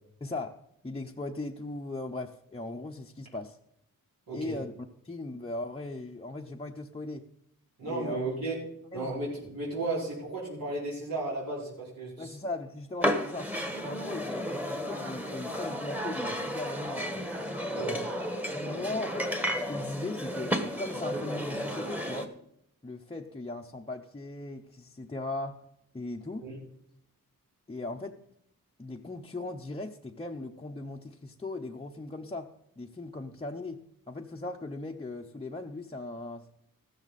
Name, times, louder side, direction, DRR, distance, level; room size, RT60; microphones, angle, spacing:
voice 1, 0.2-0.6 0.8-3.6 4.3-4.7 5.0-7.3 7.8-8.3 8.9-9.1 12.2-13.5 13.8-17.3 18.5-22.3 22.8-25.6 25.9-26.5 27.7-28.2 28.8-36.5, left 2 dB, 15° left, 0 dB, 0.7 m, -38 dB
voice 2, 7.8-8.6 8.9-12.3 17.7-18.1 26.4-26.6, right 2 dB, 80° right, -6 dB, 4.9 m, -34 dB
sound 1, 13.0-22.3, equal, 5° right, 1.3 m, -33 dB
14.5 x 13.5 x 4.1 m, 0.74 s
wide cardioid pair, 110°, 35 cm